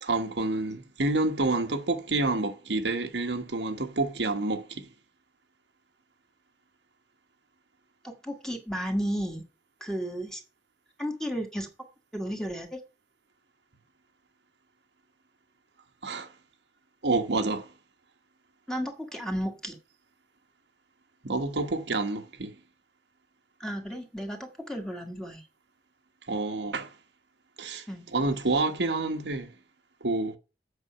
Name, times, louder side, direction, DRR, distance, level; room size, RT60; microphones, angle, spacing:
voice 1, 0.0-4.9 16.0-16.3 17.0-17.7 21.2-22.5 26.3-26.9 27.6-27.8 28.1-29.5 30.0-30.4, right 2 dB, 75° right, 1.3 m, -28 dB
voice 2, 8.0-9.4 9.8-10.4 11.0-11.7 12.1-12.8 18.7-19.8 23.6-25.4 27.9-28.1, equal, 5° left, 1.7 m, -33 dB
8.2 x 6.1 x 5.6 m
head